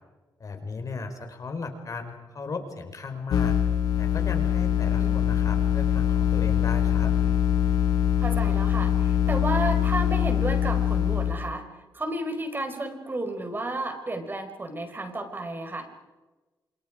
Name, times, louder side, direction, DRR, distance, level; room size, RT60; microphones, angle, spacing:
voice 1, 0.4-3.5 4.0-7.1, left 4 dB, 50° left, 6 dB, 4.6 m, -36 dB
sound 1, 3.3-11.3, left 9 dB, 85° left, 3.0 m, -23 dB
voice 2, 4.8-5.3 8.2-11.6 11.9-15.9, right 2 dB, 30° right, 5 dB, 5.1 m, -32 dB
28.5 x 27.5 x 5.1 m, 1.2 s
cardioid pair, 70°, 7 cm